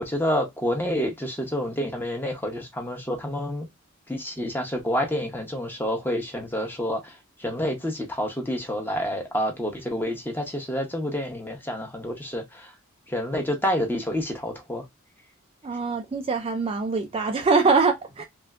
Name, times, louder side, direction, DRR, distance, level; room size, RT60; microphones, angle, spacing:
voice 1, 0.0-3.7 4.1-12.7 13.1-14.8, equal, 10° left, 0.8 m, -28 dB
voice 2, 15.6-18.2, right 4 dB, 30° right, 0.3 m, -23 dB
3.4 x 2.5 x 2.3 m
head